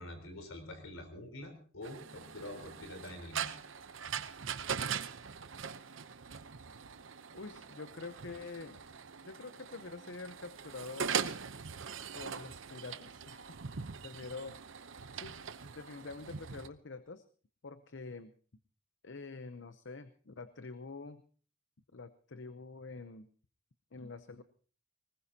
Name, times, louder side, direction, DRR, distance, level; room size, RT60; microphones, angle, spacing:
voice 1, 0.0-3.5, left 1 dB, 80° left, 6 dB, 3.9 m, -46 dB
sound 1, 1.8-16.7, right 7 dB, 70° right, 0.8 m, -41 dB
voice 2, 7.3-8.8 9.2-11.2 12.1-13.5 14.0-14.6 15.1-15.4 15.7-17.2 17.6-18.3 19.0-21.2 21.9-23.3 23.9-24.4, left 3 dB, 60° left, 11 dB, 0.8 m, -46 dB
20.0 x 19.5 x 2.8 m, 0.41 s
head